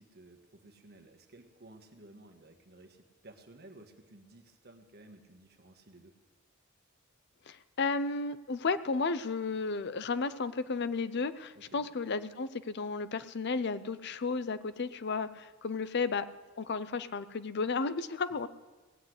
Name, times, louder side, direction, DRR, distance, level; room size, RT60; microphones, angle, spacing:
voice 1, 0.0-6.1 11.5-11.9, right 2 dB, 55° right, 5 dB, 1.5 m, -55 dB
voice 2, 7.5-16.3 16.6-18.5, left 4 dB, 55° left, 13 dB, 0.6 m, -33 dB
18.5 x 8.1 x 8.0 m, 1.3 s
head